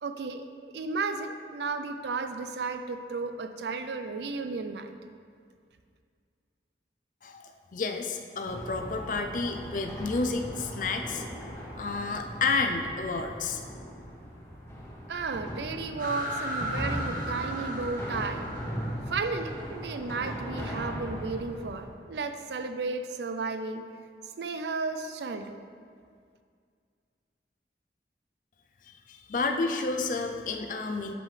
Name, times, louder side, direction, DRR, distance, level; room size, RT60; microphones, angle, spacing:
voice 1, 0.0-4.9 15.1-18.4 19.1-23.8 24.4-25.6, right 4 dB, 75° right, 8 dB, 0.5 m, -33 dB
voice 2, 7.2-11.2 11.8-13.6 29.1-31.1, left 3 dB, 45° left, 4 dB, 0.5 m, -30 dB
sound 1, 8.4-21.9, equal, 15° left, 1.1 m, -38 dB
sound 2, 16.0-20.5, equal, 50° right, 1.3 m, -37 dB
7.6 x 7.4 x 3.3 m, 2.1 s
head